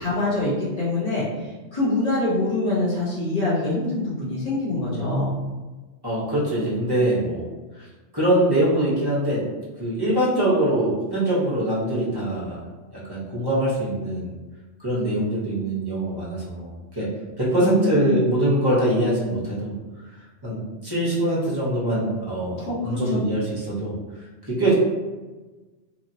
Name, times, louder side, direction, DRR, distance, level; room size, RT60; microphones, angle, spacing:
voice 1, 0.0-5.3 17.5-18.2 22.6-23.2, left 2 dB, 35° left, -9 dB, 1.2 m, -25 dB
voice 2, 6.0-7.4 7.8-7.9 8.1-9.4 9.8-12.6 13.1-14.3 14.8-17.1 17.4-19.7 20.4-23.9 24.5-24.7, right 1 dB, 20° right, -7 dB, 0.9 m, -23 dB
3.0 x 2.7 x 2.6 m, 1.2 s
omnidirectional pair, 1.2 m